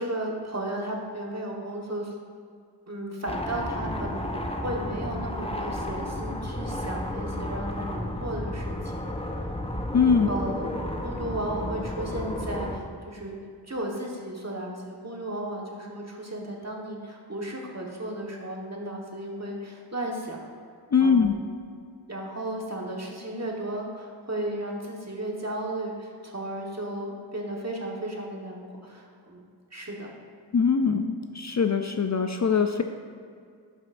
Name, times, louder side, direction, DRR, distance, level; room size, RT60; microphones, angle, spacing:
voice 1, 0.0-2.1 2.9-9.1 10.3-10.7 11.0-13.4 13.7-20.5 21.0-21.3 22.1-29.4 29.7-30.1, right 1 dB, 35° right, -1 dB, 1.4 m, -34 dB
sound 1, 3.3-12.8, left 1 dB, 15° left, 0.8 m, -32 dB
voice 2, 9.9-10.3 20.9-21.4 30.5-32.8, left 6 dB, 40° left, 6 dB, 0.4 m, -22 dB
11.5 x 6.3 x 2.6 m, 2.2 s
wide cardioid pair, 40°, 43 cm